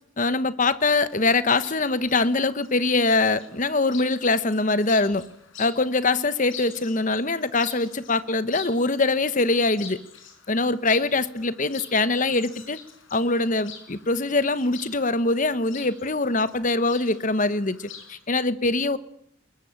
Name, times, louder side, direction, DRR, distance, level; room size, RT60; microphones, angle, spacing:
voice 1, 0.2-5.2 5.6-10.0 10.5-12.8 13.1-19.0, left 3 dB, 40° left, 1.1 m, -23 dB
Chirp tweet, 1.1-18.2, left 7 dB, 70° left, 5.0 m, -45 dB
21.5 x 20.0 x 8.8 m
head